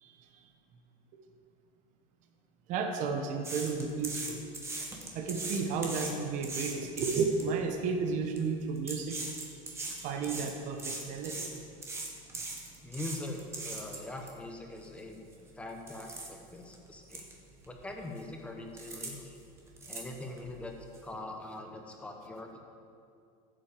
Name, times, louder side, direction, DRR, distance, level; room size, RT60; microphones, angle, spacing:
voice 1, 2.7-4.4 5.1-11.5, right 5 dB, 45° right, 4 dB, 1.2 m, -33 dB
sound 1, 3.4-7.5 8.1-8.4 8.8-14.3 14.8-14.9 15.3-15.5 15.9-16.3 16.7-16.8 17.1-17.3 17.6-18.2 18.8-19.1 19.4-20.5 20.9-21.0, right 3 dB, 15° right, 1.4 m, -39 dB
voice 2, 12.8-15.2 15.6-17.2 17.6-19.4 19.9-20.7 21.0-22.6, left 2 dB, 5° left, 2 dB, 1.1 m, -42 dB
15.0 x 7.7 x 5.2 m, 2.4 s
cardioid pair, 160°, 18 cm